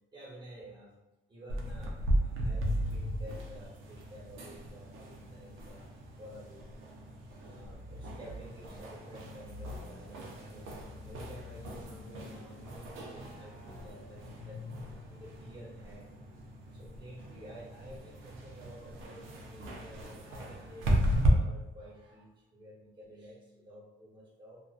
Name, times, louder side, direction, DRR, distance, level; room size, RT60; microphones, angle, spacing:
voice 1, 0.1-0.9 1.3-5.9 6.2-6.6 7.2-14.7 15.1-16.1 16.7-24.6, equal, 25° right, -6 dB, 1.0 m, -51 dB
sound 1, 1.5-21.3, equal, 85° right, 0.5 m, -36 dB
sound 2, 7.5-8.5 9.3-15.3, left 3 dB, 65° left, 0.5 m, -49 dB
2.3 x 2.2 x 2.4 m, 0.99 s
cardioid pair, 90°, 20 cm